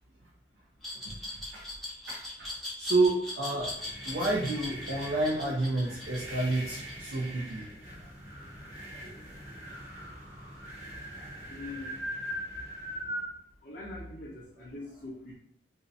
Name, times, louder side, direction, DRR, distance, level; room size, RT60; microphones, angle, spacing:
Glass, 0.8-7.7, left 1 dB, ahead, 0.6 m, -40 dB
voice 1, 1.0-1.7 2.1-2.5 2.8-7.7 8.9-9.2 11.1-11.3, right 2 dB, 60° right, -1 dB, 0.4 m, -30 dB
sound 1, 3.5-13.3, equal, 40° right, 0.7 m, -41 dB
voice 2, 11.5-11.9 13.6-15.4, left 2 dB, 50° left, -5 dB, 0.4 m, -42 dB
2.6 x 2.0 x 2.4 m, 0.71 s
head